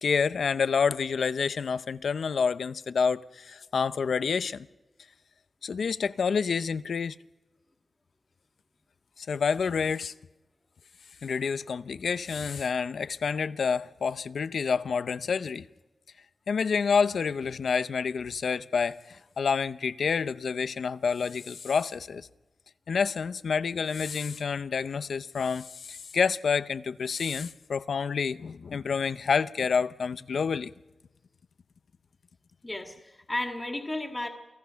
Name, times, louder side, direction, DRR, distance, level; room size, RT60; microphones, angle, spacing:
voice 1, 0.0-4.7 5.6-7.2 9.2-10.1 11.2-15.7 16.5-22.3 22.9-30.7, left 5 dB, 90° left, 0.7 m, -28 dB
voice 2, 32.6-34.3, left 1 dB, 20° left, 1.9 m, -33 dB
28.5 x 19.0 x 5.7 m
wide cardioid pair, 145°, 0 cm